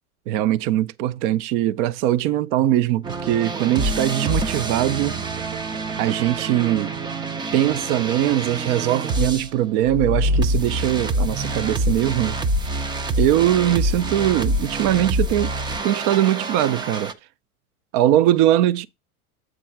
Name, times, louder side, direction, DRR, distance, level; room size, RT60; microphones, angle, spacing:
voice 1, 0.3-5.2 6.0-6.9 7.5-12.4 13.2-15.6 15.8-17.1 17.9-18.9, right 13 dB, 50° right, 0.6 m, -21 dB
sound 1, 3.0-9.5 9.8-17.1, right 1 dB, 10° right, 0.3 m, -26 dB
7.7 x 3.8 x 5.9 m
hypercardioid pair, 95°, 45 cm